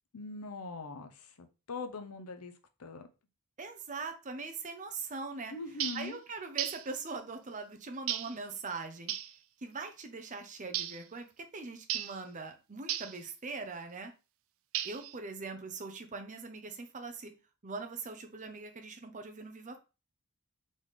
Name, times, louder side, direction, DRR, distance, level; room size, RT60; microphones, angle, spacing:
voice 1, 0.1-2.5 2.8-3.1 5.5-6.2, left 3 dB, 85° left, 7 dB, 0.7 m, -42 dB
voice 2, 3.6-5.5 5.9-9.1 9.6-14.1 14.8-17.3 17.6-19.8, right 4 dB, 35° right, 6 dB, 0.7 m, -41 dB
sound 1, 5.8-6.1 6.6-6.9 8.1-8.4 9.1-9.3 10.7-11.0 11.9-12.2 12.9-13.2 14.7-15.2, right 12 dB, 60° right, 0.4 m, -35 dB
4.0 x 3.8 x 3.2 m, 0.31 s
head